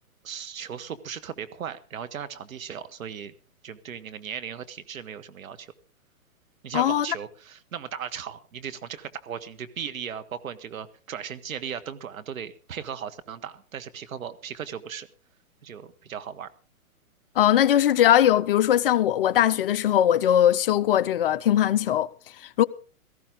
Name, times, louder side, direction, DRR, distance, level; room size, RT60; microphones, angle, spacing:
voice 1, 0.2-3.3 3.6-5.7 6.6-15.1 15.6-16.5, right 8 dB, 65° right, 1.7 m, -37 dB
voice 2, 6.7-7.1 17.4-22.1 22.4-22.6, left 11 dB, 40° left, 0.6 m, -20 dB
17.5 x 14.5 x 3.8 m
hypercardioid pair, 130°, 43 cm